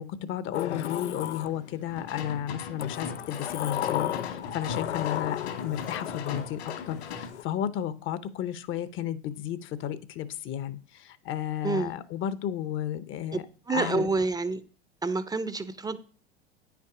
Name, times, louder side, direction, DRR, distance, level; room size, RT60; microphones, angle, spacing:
voice 1, 0.0-6.6 6.9-13.4 13.7-14.1, left 10 dB, 35° left, 0.8 m, -33 dB
Sliding door, 0.5-2.0 2.8-7.4, left 11 dB, 90° left, 0.5 m, -34 dB
sound 1, 1.9-7.3, left 6 dB, 70° left, 2.3 m, -39 dB
voice 2, 13.7-14.6 15.0-16.0, right 3 dB, 10° right, 0.6 m, -28 dB
9.2 x 5.9 x 4.9 m
hypercardioid pair, 90°, 33 cm